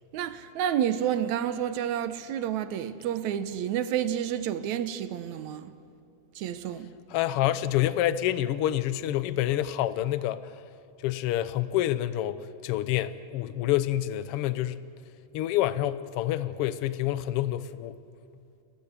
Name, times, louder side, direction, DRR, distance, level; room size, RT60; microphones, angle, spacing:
voice 1, 0.1-5.7 6.4-6.9, right 10 dB, 80° right, 2.2 m, -30 dB
voice 2, 7.1-10.5 11.0-14.8 15.3-17.9, left 13 dB, 70° left, 1.4 m, -27 dB
28.5 x 16.0 x 7.5 m
omnidirectional pair, 3.3 m